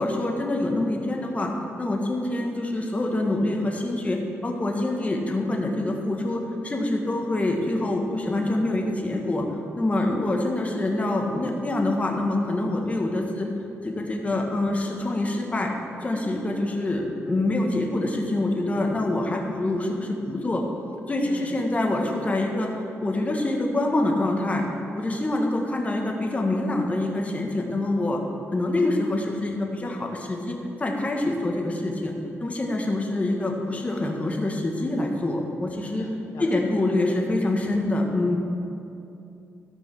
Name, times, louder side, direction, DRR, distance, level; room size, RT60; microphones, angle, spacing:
voice 1, 0.0-1.5 1.8-9.4 9.7-13.5 13.8-15.7 16.0-20.6 21.1-24.6 24.9-28.2 28.5-32.1 32.4-36.1 36.4-38.4, left 2 dB, 25° left, 1 dB, 1.6 m, -25 dB
voice 2, 21.2-21.6 35.9-37.2, left 3 dB, 75° left, 1 dB, 0.9 m, -41 dB
13.5 x 5.3 x 6.5 m, 2.7 s
cardioid pair, 90°, 5 cm